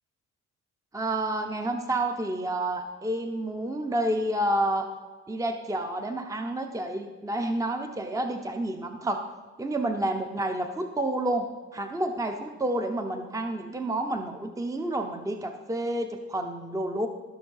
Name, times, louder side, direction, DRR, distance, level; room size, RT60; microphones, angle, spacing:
voice 1, 0.9-4.9 5.3-9.3 9.6-17.1, right 1 dB, 10° right, 5 dB, 0.8 m, -29 dB
14.0 x 6.4 x 5.5 m, 1.4 s
cardioid pair, 90°, 30 cm